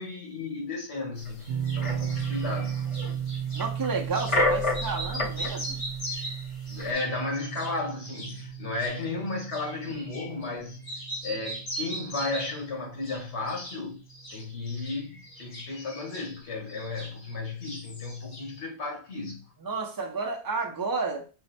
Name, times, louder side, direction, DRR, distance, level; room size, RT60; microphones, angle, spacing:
voice 1, 0.0-2.8 6.7-10.8 11.2-14.0 14.3-19.4, left 3 dB, 90° left, 1.8 m, -34 dB
sound 1, 1.3-1.4 1.8-3.1 3.6-5.5 5.9-6.0 6.4-6.9, left 2 dB, 35° left, 0.7 m, -29 dB
sound 2, 1.4-3.7 4.1-4.4 4.7-10.6 10.8-12.7 13.0-13.8 14.1-17.4 17.6-18.6, equal, 65° left, 1.5 m, -40 dB
sound 3, 1.5-14.4, right 9 dB, 75° right, 0.8 m, -36 dB
voice 2, 3.5-5.8 19.6-21.3, right 4 dB, 35° right, 0.3 m, -31 dB
4.4 x 2.1 x 4.2 m
omnidirectional pair, 1.1 m